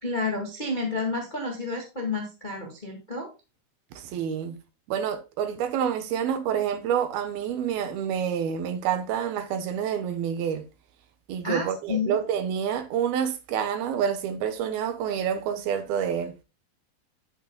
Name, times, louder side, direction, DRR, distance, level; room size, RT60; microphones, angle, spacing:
voice 1, 0.0-3.3 11.4-12.2, left 3 dB, 70° left, 0.4 m, -30 dB
voice 2, 3.9-4.6 4.9-10.7 11.3-16.4, right 8 dB, 70° right, 2.7 m, -28 dB
9.2 x 8.7 x 2.2 m
omnidirectional pair, 4.8 m